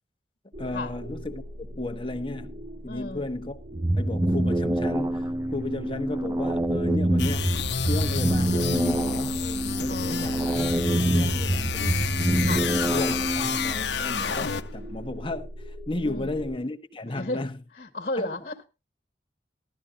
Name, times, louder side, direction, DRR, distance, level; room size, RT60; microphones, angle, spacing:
sound 1, 0.5-16.6, equal, 50° right, 2.0 m, -41 dB
voice 1, 0.6-2.6 2.8-3.6 4.0-7.6 7.9-10.6 10.9-12.0 12.5-17.6 18.2-18.3, left 2 dB, 30° left, 1.2 m, -34 dB
voice 2, 2.9-3.3 9.9-10.4 12.4-12.7 16.0-16.3 17.1-17.5 17.7-18.7, left 2 dB, 45° left, 1.8 m, -33 dB
sound 2, 3.7-13.7, right 1 dB, 15° right, 0.6 m, -26 dB
sound 3, 7.2-14.8, left 6 dB, 80° left, 1.0 m, -30 dB
16.5 x 12.5 x 2.7 m
head